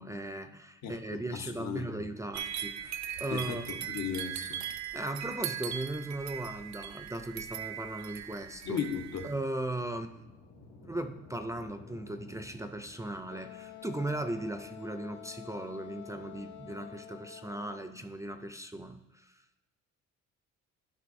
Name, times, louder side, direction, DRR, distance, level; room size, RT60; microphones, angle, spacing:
voice 1, 0.0-4.0 4.9-8.8 9.2-10.3 10.8-19.3, right 1 dB, 10° right, 7 dB, 0.5 m, -38 dB
voice 2, 0.8-2.1 3.3-4.6 8.6-9.3, left 7 dB, 65° left, 5 dB, 1.1 m, -36 dB
sound 1, 2.3-9.3, right 10 dB, 65° right, 0.6 m, -39 dB
sound 2, 8.4-14.7, left 2 dB, 85° left, 1.8 m, -56 dB
Wind instrument woodwind instrument, 13.3-18.0, left 12 dB, 40° left, 0.8 m, -49 dB
11.0 x 6.1 x 2.6 m, 0.97 s
cardioid pair, 90°, 30 cm